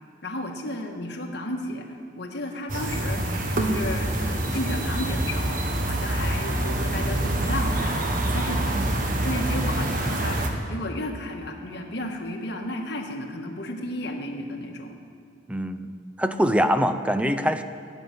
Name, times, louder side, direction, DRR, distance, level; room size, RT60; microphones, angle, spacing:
voice 1, 0.2-1.9 2.2-8.9 9.2-15.0, left 1 dB, 65° left, 2 dB, 1.7 m, -33 dB
sound 1, 2.7-10.5, right 1 dB, 50° right, 1.5 m, -26 dB
voice 2, 15.5-15.9 16.2-17.6, equal, 5° right, 10 dB, 0.6 m, -24 dB
15.0 x 7.3 x 9.4 m, 2.2 s
head